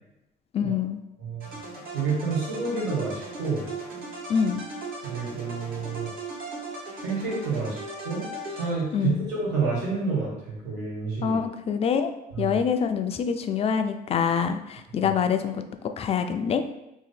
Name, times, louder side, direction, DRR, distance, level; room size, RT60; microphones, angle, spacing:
voice 1, 0.5-1.0 4.3-4.6 8.9-9.3 11.2-12.1 12.4-15.6 16.0-16.6, left 7 dB, 35° left, 8 dB, 0.3 m, -25 dB
sound 1, 1.4-9.1, right 2 dB, 60° right, 1.2 m, -38 dB
voice 2, 1.9-3.7 5.0-6.1 7.0-11.4 12.3-12.6, right 4 dB, 85° right, -5 dB, 1.5 m, -29 dB
2.8 x 2.6 x 4.1 m, 0.87 s
cardioid pair, 110°, 17 cm